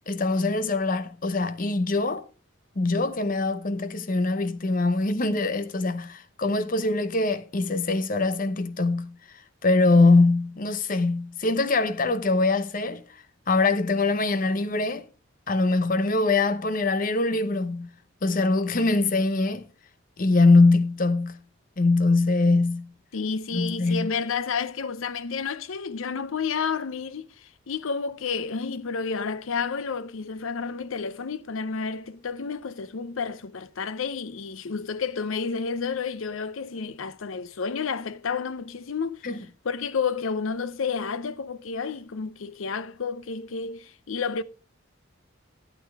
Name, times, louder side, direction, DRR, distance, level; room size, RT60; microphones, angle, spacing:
voice 1, 0.1-2.2 2.8-9.1 9.6-13.0 13.5-15.0 15.5-17.9 18.2-19.6 20.2-21.4 21.8-22.9 23.5-24.1 39.2-39.4, left 3 dB, 40° left, 0.7 m, -23 dB
voice 2, 23.1-44.4, left 5 dB, 75° left, 0.6 m, -31 dB
12.0 x 8.5 x 3.5 m
head